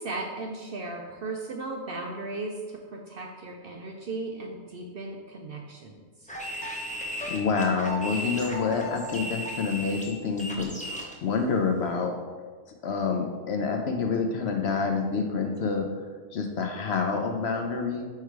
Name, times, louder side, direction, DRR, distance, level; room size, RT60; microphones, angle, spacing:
voice 1, 0.0-6.3, right 2 dB, 60° right, 1 dB, 0.6 m, -36 dB
sound 1, 6.3-11.1, equal, 10° left, 0.6 m, -35 dB
voice 2, 7.3-12.1 12.8-15.9 16.3-18.0, left 5 dB, 65° left, 4 dB, 0.7 m, -27 dB
4.7 x 4.5 x 4.6 m, 1.5 s
omnidirectional pair, 1.4 m